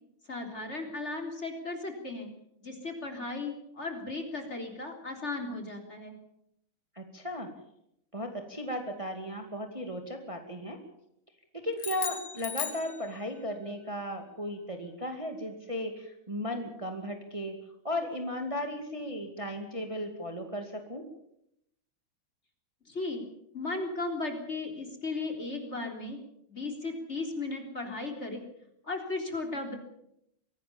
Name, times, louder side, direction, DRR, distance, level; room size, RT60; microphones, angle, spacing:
voice 1, 0.3-2.3 2.6-6.1 22.9-23.2 23.5-26.2 26.5-28.4 28.8-29.7, left 3 dB, 30° left, 3 dB, 3.8 m, -36 dB
voice 2, 6.9-7.5 8.1-10.8 11.5-17.6 17.8-21.0, left 1 dB, 15° right, 4 dB, 2.3 m, -36 dB
sound 1, 11.8-13.6, left 8 dB, 90° left, 2.7 m, -37 dB
24.0 x 18.0 x 7.1 m, 0.76 s
omnidirectional pair, 2.3 m